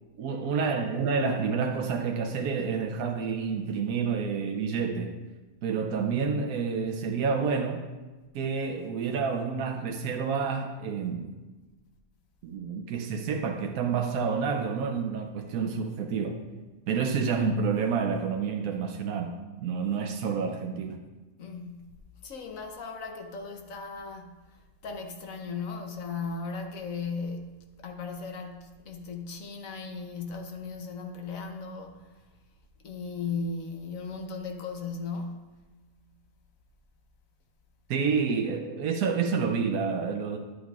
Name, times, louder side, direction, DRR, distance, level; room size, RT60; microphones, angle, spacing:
voice 1, 0.2-5.1 5.6-7.9 8.3-11.3 12.4-16.4 16.9-19.3 19.6-21.0 37.9-40.4, right 5 dB, 80° right, 3 dB, 1.1 m, -29 dB
voice 2, 21.4-22.0 22.2-24.4 24.8-32.1 32.8-35.7, left 4 dB, 65° left, 4 dB, 1.2 m, -37 dB
11.5 x 8.3 x 2.4 m, 1.2 s
omnidirectional pair, 1.5 m